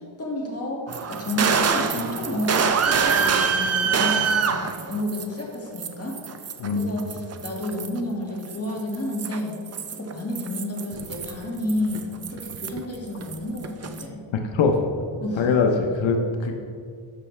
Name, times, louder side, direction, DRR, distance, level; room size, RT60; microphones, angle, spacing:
voice 1, 0.0-6.2 6.7-9.6 9.9-14.3 15.2-15.5, left 1 dB, 30° left, -2 dB, 1.8 m, -30 dB
sound 1, 0.9-5.4 5.8-8.0 8.4-13.0 13.2-14.0, right 6 dB, 35° right, 0.5 m, -25 dB
voice 2, 6.6-7.1 14.5-14.9 15.4-16.5, left 4 dB, 85° left, 3 dB, 0.8 m, -22 dB
12.5 x 5.7 x 3.2 m, 2.3 s
wide cardioid pair, 110°, 45 cm